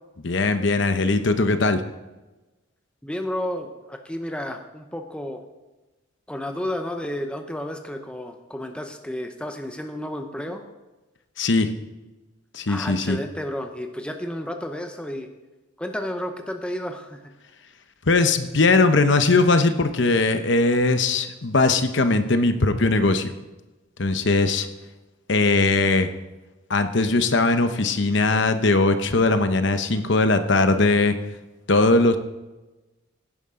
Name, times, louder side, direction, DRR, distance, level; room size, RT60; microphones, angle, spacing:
voice 1, 0.2-1.8 11.4-11.7 12.5-13.2 18.1-23.3 24.0-24.7 25.3-26.1 26.7-31.1 31.7-32.2, left 3 dB, 60° left, 9 dB, 0.9 m, -20 dB
voice 2, 3.0-5.4 6.3-10.6 12.7-15.3 15.8-17.3, left 1 dB, 5° left, 5 dB, 0.7 m, -32 dB
15.5 x 11.0 x 3.8 m, 1.1 s
head